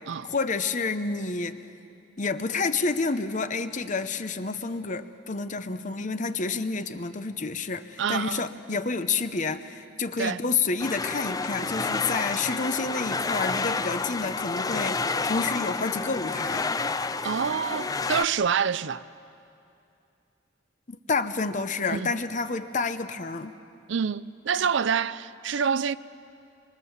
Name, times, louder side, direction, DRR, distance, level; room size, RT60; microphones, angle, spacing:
voice 1, 0.2-1.6 2.2-16.6 20.9-23.5, left 4 dB, 40° left, 0.8 m, -29 dB
voice 2, 8.0-8.5 10.2-10.4 17.2-19.0 21.9-22.1 23.9-25.9, right 7 dB, 75° right, 0.5 m, -27 dB
sound 1, 10.8-18.2, left 4 dB, 20° left, 0.5 m, -29 dB
26.5 x 23.0 x 7.3 m
head